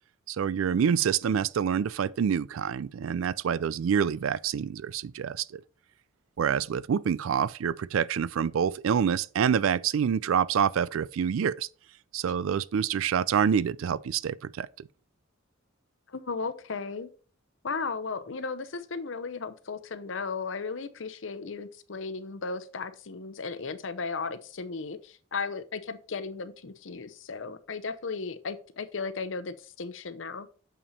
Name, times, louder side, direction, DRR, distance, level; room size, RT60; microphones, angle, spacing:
voice 1, 0.3-5.6 6.4-11.7 12.1-14.9, right 7 dB, 85° right, 0.4 m, -27 dB
voice 2, 16.1-17.1 17.6-30.5, left 4 dB, 70° left, 0.7 m, -35 dB
7.1 x 5.8 x 4.1 m
head